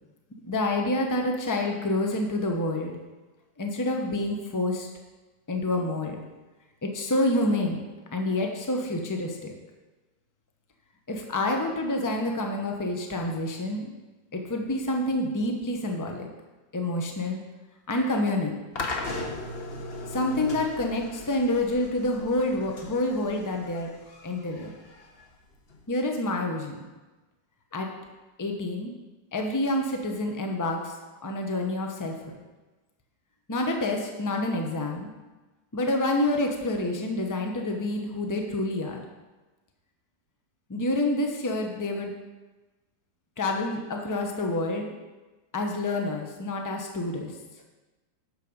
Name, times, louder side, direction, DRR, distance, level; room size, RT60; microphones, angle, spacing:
voice 1, 0.4-2.9 3.6-4.9 5.5-6.2 6.8-7.8 8.1-9.5 11.1-13.9 14.3-16.3 16.7-17.4 17.9-18.5 20.1-23.9 24.2-24.7 25.9-26.8 27.7-27.9 28.4-28.9 29.3-31.0 31.2-32.2 33.5-35.1 35.7-39.0 40.7-42.1 43.4-45.0 45.5-47.3, left 1 dB, 20° left, 2 dB, 0.4 m, -28 dB
sound 1, 18.8-25.8, left 2 dB, 40° left, 0.9 m, -38 dB
8.2 x 6.7 x 5.4 m, 1.2 s
omnidirectional pair, 2.0 m